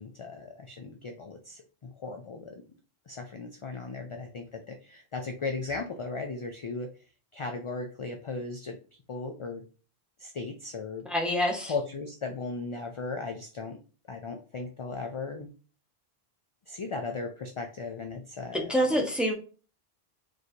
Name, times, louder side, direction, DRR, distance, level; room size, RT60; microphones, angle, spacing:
voice 1, 0.0-2.6 3.1-6.9 7.3-8.8 9.1-9.6 10.2-11.1 11.7-13.8 14.1-15.5 16.7-18.8, left 3 dB, 50° left, 4 dB, 0.4 m, -37 dB
voice 2, 11.0-11.7 18.5-19.3, equal, ahead, -1 dB, 0.8 m, -26 dB
4.1 x 3.2 x 2.7 m, 0.36 s
omnidirectional pair, 1.1 m